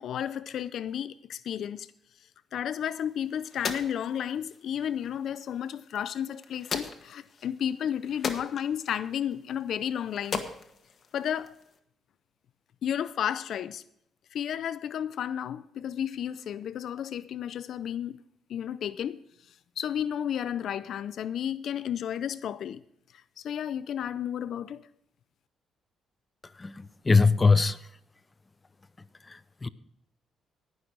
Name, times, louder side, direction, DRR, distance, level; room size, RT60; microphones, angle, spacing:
voice 1, 0.0-1.9 2.5-10.4 11.1-11.6 12.8-13.8 14.3-18.2 18.5-19.2 19.8-22.8 23.1-24.8, left 9 dB, 70° left, 0.4 m, -32 dB
sound 1, 2.8-11.8, left 5 dB, 45° left, 1.4 m, -40 dB
voice 2, 26.6-27.8 29.3-29.7, left 4 dB, 25° left, 0.6 m, -22 dB
18.0 x 6.2 x 5.1 m
cardioid pair, 90°, 0 cm